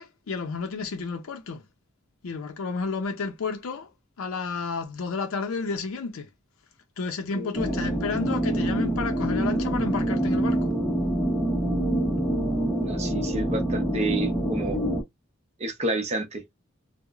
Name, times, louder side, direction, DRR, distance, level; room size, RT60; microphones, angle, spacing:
voice 1, 0.0-1.6 2.2-3.9 4.2-6.3 7.0-10.7, left 4 dB, 85° left, 0.5 m, -31 dB
voice 2, 7.3-7.7 12.8-14.8 15.6-16.5, right 2 dB, 35° right, 0.7 m, -30 dB
sound 1, 7.5-15.0, right 1 dB, 10° left, 0.6 m, -26 dB
3.0 x 2.0 x 2.3 m
head